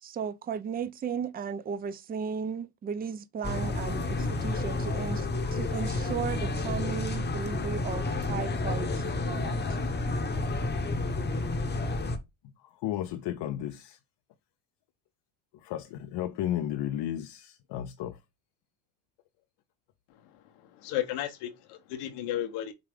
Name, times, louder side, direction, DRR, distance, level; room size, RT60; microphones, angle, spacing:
voice 1, 0.0-9.6, right 6 dB, 20° right, 0.4 m, -35 dB
sound 1, 3.4-12.2, left 2 dB, 20° left, 0.8 m, -30 dB
voice 2, 12.8-14.0 15.6-18.2, left 11 dB, 60° left, 0.5 m, -33 dB
voice 3, 20.3-22.7, left 12 dB, 85° left, 0.9 m, -34 dB
4.8 x 2.4 x 3.4 m
supercardioid pair, 85°, 49 cm